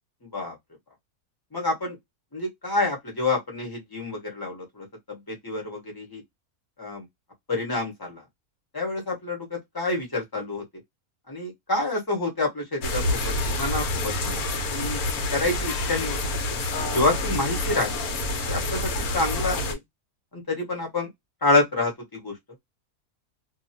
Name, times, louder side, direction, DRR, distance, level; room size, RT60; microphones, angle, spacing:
voice 1, 0.2-0.6 1.5-2.0 2.3-6.2 6.8-7.1 7.5-8.2 8.7-10.6 11.3-14.4 14.7-15.0 15.3-16.3 16.6-17.9 18.5-19.8 20.3-21.1 21.4-22.4, left 2 dB, 15° left, 0.9 m, -28 dB
sound 1, 12.8-19.7, left 2 dB, 75° left, 1.2 m, -27 dB
2.7 x 2.4 x 2.8 m
omnidirectional pair, 1.6 m